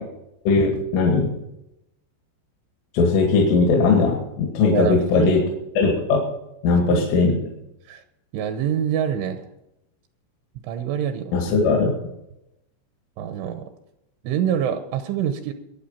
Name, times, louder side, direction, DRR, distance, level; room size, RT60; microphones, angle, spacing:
voice 1, 0.5-1.4 2.9-5.4 5.8-6.2 6.6-7.3 11.3-11.9, left 4 dB, 75° left, 0 dB, 4.7 m, -19 dB
voice 2, 4.7-5.4 6.7-7.1 7.9-8.0 8.3-9.5 10.6-11.3 13.2-13.7 14.2-15.5, right 9 dB, 80° right, 8 dB, 3.2 m, -25 dB
22.5 x 8.3 x 5.7 m, 0.87 s
omnidirectional pair, 5.8 m